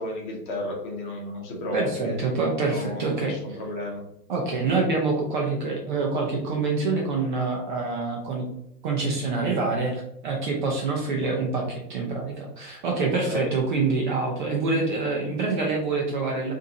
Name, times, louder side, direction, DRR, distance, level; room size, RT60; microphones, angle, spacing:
voice 1, 0.0-2.2 2.6-4.0 13.1-13.5, left 1 dB, 30° left, 0 dB, 1.0 m, -33 dB
voice 2, 1.7-3.6 4.3-8.5 8.8-16.5, right 3 dB, 30° right, -1 dB, 0.6 m, -26 dB
4.6 x 2.7 x 2.8 m, 0.78 s
hypercardioid pair, 130°, 49 cm